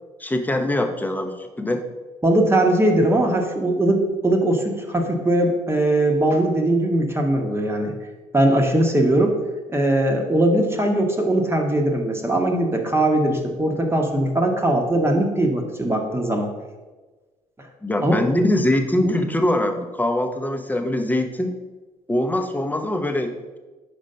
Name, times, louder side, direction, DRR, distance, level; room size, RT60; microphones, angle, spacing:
voice 1, 0.2-1.8 17.8-21.6 22.1-23.6, left 1 dB, 10° left, 5 dB, 0.9 m, -23 dB
voice 2, 2.2-7.9 8.3-9.3 9.7-16.5 18.0-18.2 19.0-19.2, right 1 dB, 20° right, 2 dB, 1.2 m, -20 dB
5.2 x 5.0 x 5.5 m, 1.2 s
supercardioid pair, 70°, 14 cm